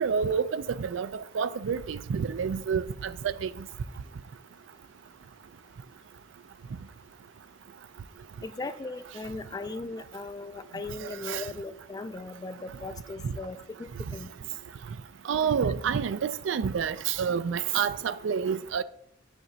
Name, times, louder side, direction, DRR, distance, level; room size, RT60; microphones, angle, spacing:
voice 1, 0.0-3.7 11.0-11.4 13.2-13.3 15.3-18.8, right 6 dB, 80° right, 0.4 m, -29 dB
voice 2, 8.4-14.3, left 3 dB, 20° left, 0.3 m, -38 dB
7.5 x 5.9 x 2.7 m
head